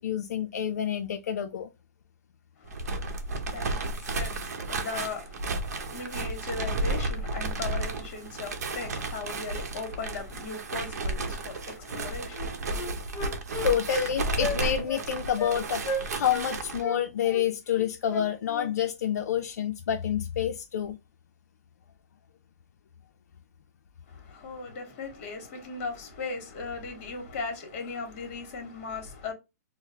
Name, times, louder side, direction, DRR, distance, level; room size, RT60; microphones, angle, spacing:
voice 1, 0.0-1.7 13.6-21.0, left 9 dB, 85° left, 0.4 m, -28 dB
voice 2, 2.6-13.2 24.1-29.3, left 4 dB, 45° left, 1.3 m, -38 dB
sound 1, 2.6-16.8, right 2 dB, 80° right, 0.8 m, -33 dB
Wind instrument woodwind instrument, 11.9-12.0 12.3-14.1 14.4-14.6 14.9-15.0 15.4-15.6 15.8-16.5 16.8-18.7, left 3 dB, 20° left, 0.6 m, -34 dB
4.6 x 2.0 x 2.8 m
hypercardioid pair, 160°, 9 cm